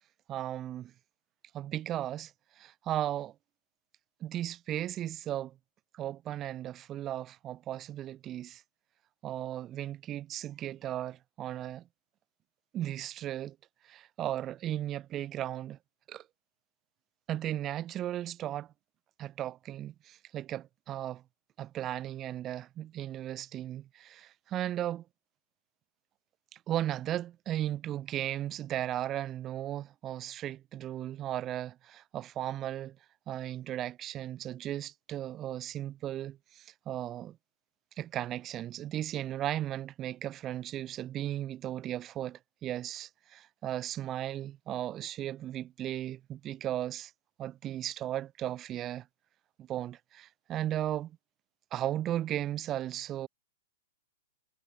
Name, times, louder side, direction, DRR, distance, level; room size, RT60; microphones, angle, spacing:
voice 1, 0.3-0.9 1.5-2.3 2.6-3.3 4.2-5.5 5.9-8.6 9.2-11.8 12.7-13.6 13.9-15.8 16.1-16.2 17.3-18.7 19.2-21.2 21.6-25.0 26.7-33.0 33.3-37.4 38.0-47.1 47.4-49.0 49.6-51.2 51.7-53.3, right 12 dB, 25° right, 4.1 m, -36 dB
hypercardioid pair, 135°, 0 cm